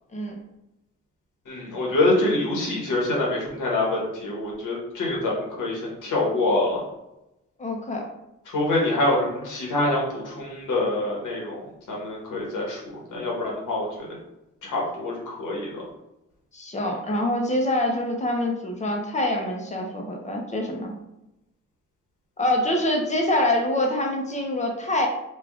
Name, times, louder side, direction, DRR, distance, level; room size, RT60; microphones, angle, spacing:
voice 1, 1.5-6.8 8.5-11.6 11.9-12.8 13.1-13.9 14.6-15.7, left 2 dB, 85° left, -3 dB, 1.3 m, -25 dB
voice 2, 7.6-8.0 16.5-20.9 22.4-25.1, left 1 dB, 25° left, 1 dB, 0.7 m, -25 dB
3.4 x 2.4 x 3.6 m, 0.89 s
wide cardioid pair, 140°, 31 cm